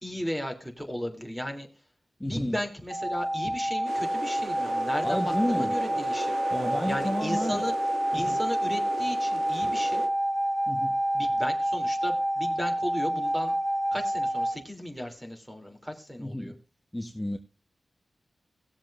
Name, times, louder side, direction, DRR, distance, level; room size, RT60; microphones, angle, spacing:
voice 1, 0.0-1.7 2.2-6.4 6.9-7.7 8.1-10.0 11.1-13.5 13.9-16.5, equal, 10° right, 3.1 m, -35 dB
voice 2, 2.2-2.6 5.0-5.7 6.5-7.6 8.1-8.4 10.7-11.0 16.2-16.6 16.9-17.4, left 1 dB, 10° left, 1.2 m, -31 dB
sound 1, 2.9-14.6, right 1 dB, 30° right, 3.6 m, -28 dB
sound 2, 3.9-10.1, right 3 dB, 75° right, 1.9 m, -38 dB
19.0 x 7.3 x 2.5 m
cardioid pair, 60°, 0 cm